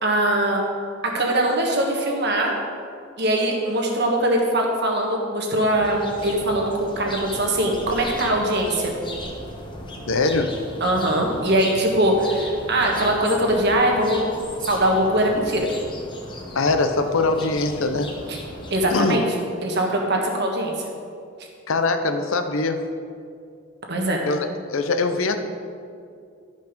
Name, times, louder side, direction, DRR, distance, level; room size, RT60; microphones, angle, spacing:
voice 1, 0.0-0.6 1.1-2.6 3.2-8.9 10.8-14.2 14.7-15.7 18.3-18.4 18.7-19.3 19.6-20.7 23.9-24.2, right 1 dB, 55° right, 0 dB, 1.5 m, -21 dB
sound 1, 5.8-19.0, left 1 dB, 25° left, 1.0 m, -37 dB
voice 2, 10.1-10.5 16.5-18.1 18.9-19.2 21.7-22.9 24.3-25.4, left 3 dB, 70° left, 7 dB, 0.7 m, -22 dB
11.5 x 5.3 x 5.2 m, 2.3 s
head